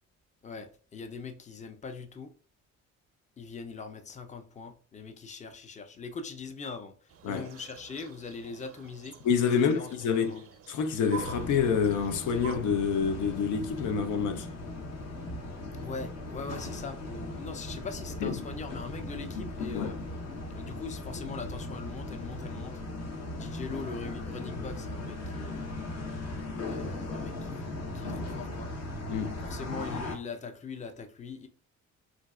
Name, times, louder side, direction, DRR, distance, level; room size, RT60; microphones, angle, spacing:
voice 1, 0.4-2.3 3.4-9.2 9.5-10.5 15.8-20.0 20.5-22.8 23.3-25.7 26.6-28.7 29.4-31.5, left 4 dB, 25° left, 0.5 m, -41 dB
sound 1, 7.1-12.6, right 6 dB, 50° right, 0.5 m, -46 dB
voice 2, 9.2-10.4 10.7-14.5 18.2-18.4 19.7-20.0 29.1-29.4, left 6 dB, 75° left, 0.5 m, -27 dB
sound 2, 11.1-30.2, left 2 dB, 55° left, 0.9 m, -38 dB
3.8 x 2.3 x 2.3 m
cardioid pair, 90°, 30 cm